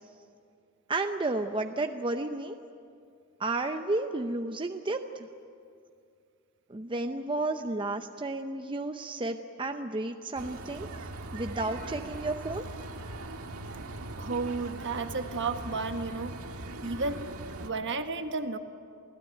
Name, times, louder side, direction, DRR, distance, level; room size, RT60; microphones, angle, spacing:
voice 1, 0.9-2.6 3.4-5.3 6.7-10.9 11.3-12.7, right 2 dB, 25° right, 6 dB, 0.7 m, -32 dB
sound 1, 10.4-17.7, right 2 dB, 75° right, 1.7 m, -40 dB
voice 2, 14.2-16.4 16.8-17.3 17.6-18.6, right 3 dB, 55° right, 7 dB, 1.4 m, -32 dB
27.5 x 17.0 x 9.1 m, 2.4 s
head